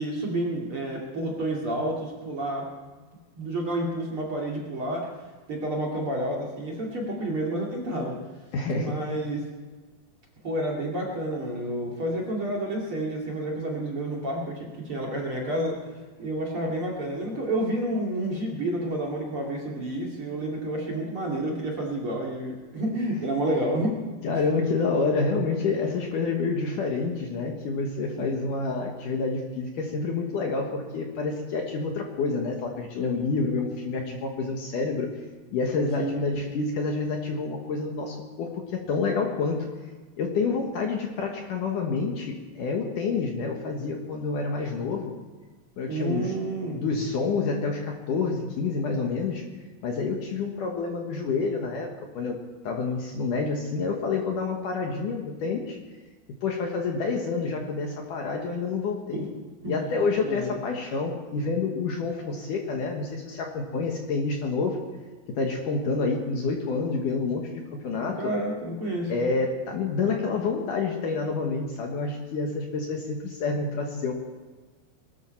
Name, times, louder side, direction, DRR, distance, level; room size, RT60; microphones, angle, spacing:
voice 1, 0.0-2.7 3.4-5.1 5.5-8.2 8.7-9.4 10.4-15.8 16.2-24.0 28.2-28.3 36.0-36.3 45.9-46.8 59.1-59.2 59.6-59.8 60.2-60.6 67.9-69.2, right 1 dB, 40° right, -2 dB, 2.7 m, -30 dB
voice 2, 8.5-9.2 24.2-35.1 35.5-39.6 40.2-45.1 45.8-46.3 46.7-49.4 49.8-52.4 52.6-55.8 56.4-59.3 59.7-64.8 65.3-68.3 69.1-74.1, left 4 dB, 60° left, 2 dB, 2.5 m, -28 dB
22.0 x 13.0 x 4.5 m, 1.4 s
omnidirectional pair, 4.8 m